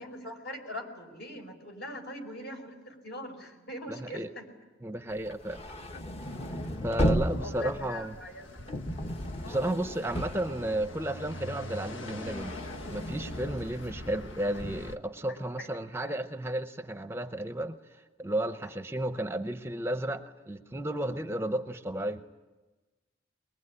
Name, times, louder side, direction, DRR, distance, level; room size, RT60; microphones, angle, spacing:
voice 1, 0.0-4.5 7.3-8.7 9.4-9.7 10.0-10.1 15.3-16.0, left 1 dB, 60° left, 3 dB, 5.2 m, -42 dB
voice 2, 3.9-4.3 4.8-5.6 6.8-8.1 9.5-12.6 12.9-17.8 18.2-22.2, right 1 dB, 15° right, 8 dB, 0.7 m, -33 dB
sound 1, 5.2-11.3 11.6-15.0, equal, 35° left, 1.2 m, -35 dB
sound 2, 6.2-15.0, left 1 dB, 85° left, 1.5 m, -45 dB
22.5 x 22.0 x 9.9 m, 1.2 s
head